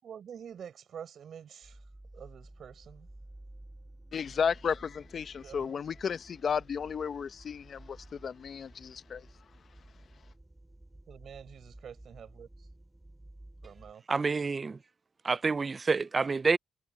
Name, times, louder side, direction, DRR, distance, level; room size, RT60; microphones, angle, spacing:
voice 1, 0.0-1.8 2.1-3.1 5.4-5.8 11.1-12.7 13.6-14.0, right 8 dB, 50° right, 5.3 m, -47 dB
sound 1, 1.6-13.9, right 1 dB, 10° right, 4.3 m, -53 dB
voice 2, 4.1-9.3, left 6 dB, 40° left, 0.8 m, -33 dB
voice 3, 14.1-14.8 15.2-16.6, right 4 dB, 25° right, 0.3 m, -28 dB
cardioid pair, 140°, 0 cm